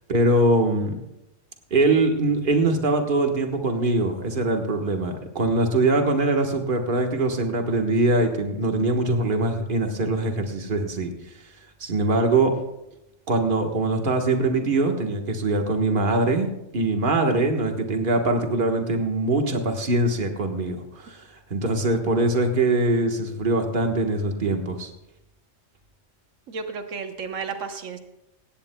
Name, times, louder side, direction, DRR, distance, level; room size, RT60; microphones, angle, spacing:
voice 1, 0.1-1.0 1.7-12.6 13.3-16.5 16.7-24.9, right 2 dB, 45° right, 3 dB, 1.5 m, -23 dB
voice 2, 26.5-28.0, right 5 dB, 90° right, 6 dB, 1.3 m, -32 dB
18.0 x 16.0 x 2.3 m, 0.90 s
omnidirectional pair, 1.3 m